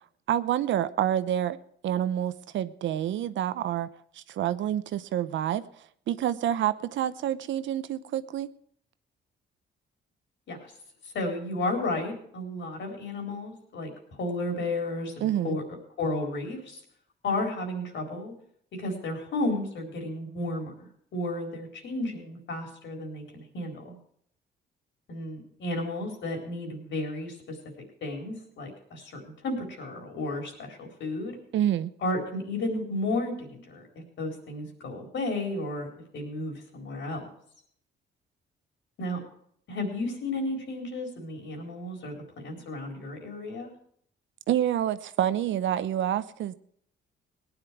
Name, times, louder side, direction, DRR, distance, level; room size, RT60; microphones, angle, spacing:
voice 1, 0.3-1.6 1.8-3.9 4.1-8.5 15.2-15.6 31.5-31.9 44.5-46.5, right 11 dB, 70° right, 0.8 m, -28 dB
voice 2, 11.1-15.6 16.0-16.8 17.2-18.3 18.8-20.7 21.1-24.0 25.1-27.6 28.0-31.4 32.0-33.9 34.2-37.3 39.0-39.2 39.7-43.7, left 2 dB, 70° left, 4.2 m, -33 dB
18.5 x 10.0 x 4.6 m
cardioid pair, 90°, 20 cm